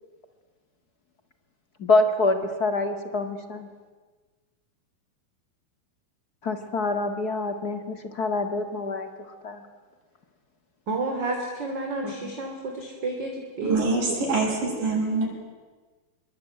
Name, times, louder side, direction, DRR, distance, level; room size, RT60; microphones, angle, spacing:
voice 1, 1.8-3.7 6.4-9.1 9.4-9.6 12.0-12.3, left 2 dB, 35° left, 7 dB, 1.6 m, -26 dB
voice 2, 10.9-14.2, right 3 dB, 30° right, 1 dB, 3.4 m, -31 dB
voice 3, 13.6-15.3, right 3 dB, 55° right, -2 dB, 8.6 m, -25 dB
27.0 x 23.5 x 9.3 m, 1.3 s
omnidirectional pair, 4.5 m